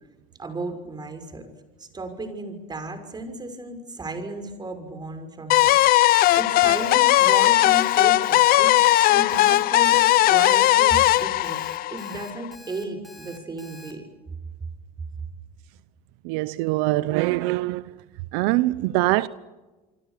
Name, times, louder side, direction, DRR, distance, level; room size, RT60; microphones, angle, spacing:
voice 1, 0.4-1.5 1.8-11.6 11.9-14.1, right 2 dB, 25° right, 6.3 m, -34 dB
sound 1, 5.5-12.5, left 16 dB, 55° left, 0.8 m, -18 dB
Alarm, 5.5-13.9, left 1 dB, ahead, 6.9 m, -47 dB
voice 2, 16.2-18.0 18.3-19.3, right 19 dB, 80° right, 0.8 m, -23 dB
28.0 x 24.0 x 6.8 m
supercardioid pair, 105°, 18 cm